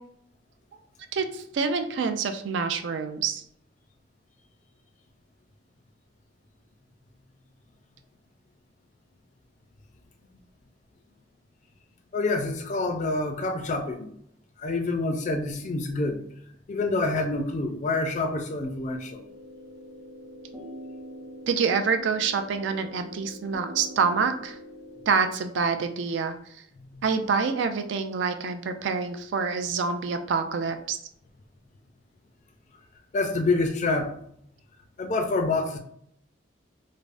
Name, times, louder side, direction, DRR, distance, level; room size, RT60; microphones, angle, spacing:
voice 1, 1.1-3.4 21.5-24.6 25.1-26.3 27.0-31.0, right 5 dB, 80° right, 8 dB, 0.3 m, -26 dB
voice 2, 12.1-14.1 14.6-16.2 16.7-19.2 26.9-27.0 33.1-34.1 35.0-35.8, left 3 dB, 40° left, 6 dB, 0.3 m, -27 dB
sound 1, 18.5-25.1, equal, 25° right, 0.7 m, -44 dB
3.3 x 2.0 x 2.4 m, 0.68 s
head